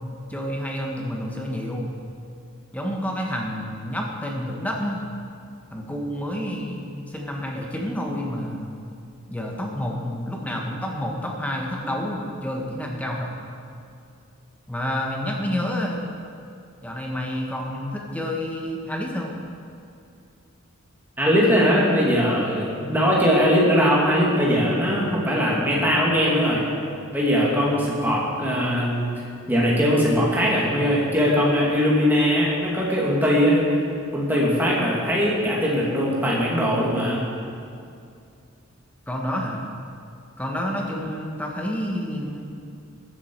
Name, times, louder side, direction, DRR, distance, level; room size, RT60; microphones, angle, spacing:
voice 1, 0.3-1.9 2.7-5.0 5.7-8.7 9.3-13.3 14.7-16.0 16.8-19.3 39.1-39.6 40.4-42.5, equal, 5° left, -1 dB, 1.4 m, -29 dB
voice 2, 21.2-26.6 27.1-29.0 29.5-33.7 34.1-37.2, equal, 10° right, -5 dB, 2.3 m, -20 dB
14.0 x 11.0 x 4.6 m, 2.5 s
head